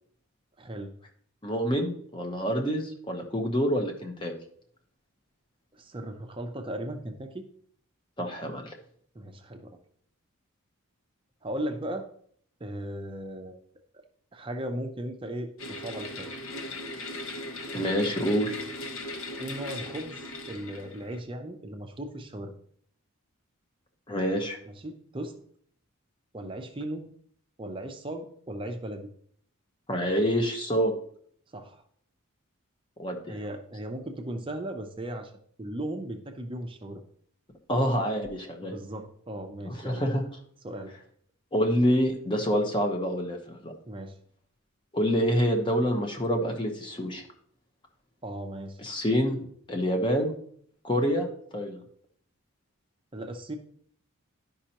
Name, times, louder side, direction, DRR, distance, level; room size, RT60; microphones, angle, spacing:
voice 1, 0.6-0.9 5.7-7.5 9.1-9.8 11.4-12.1 12.6-13.6 14.3-16.3 19.4-22.6 24.7-25.4 26.3-27.1 27.6-29.1 31.5-31.8 33.3-35.3 35.6-37.0 38.6-40.0 40.6-40.9 43.9-44.2 48.2-48.8 53.1-53.6, right 1 dB, 25° right, 4 dB, 0.6 m, -37 dB
voice 2, 1.4-4.3 8.2-8.8 17.7-18.6 24.1-24.6 29.9-30.9 33.0-33.3 37.7-38.7 39.6-40.2 41.5-43.7 44.9-47.2 48.8-49.4 49.7-50.4 50.8-51.3 51.5-51.8, equal, 20° left, 2 dB, 1.0 m, -27 dB
sound 1, 15.6-21.2, left 2 dB, 70° left, 1.1 m, -38 dB
11.5 x 5.3 x 2.9 m, 0.62 s
head